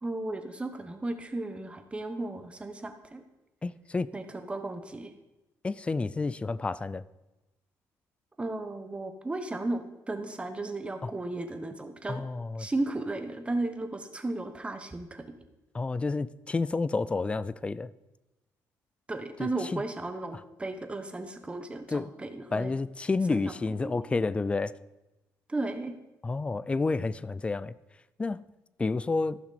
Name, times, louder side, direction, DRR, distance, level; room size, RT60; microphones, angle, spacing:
voice 1, 0.0-3.2 4.1-5.1 8.4-12.2 12.6-15.2 19.1-22.7 23.3-23.5 23.8-23.9 25.5-25.9, right 2 dB, 15° right, 1.1 m, -35 dB
voice 2, 3.6-4.1 5.6-7.0 11.0-11.1 12.1-12.7 15.7-17.9 19.4-19.8 21.9-22.1 22.5-24.7 26.2-27.7 28.2-28.4 28.8-29.4, left 3 dB, 15° left, 0.3 m, -30 dB
14.5 x 6.0 x 4.2 m
cardioid pair, 120°, 7 cm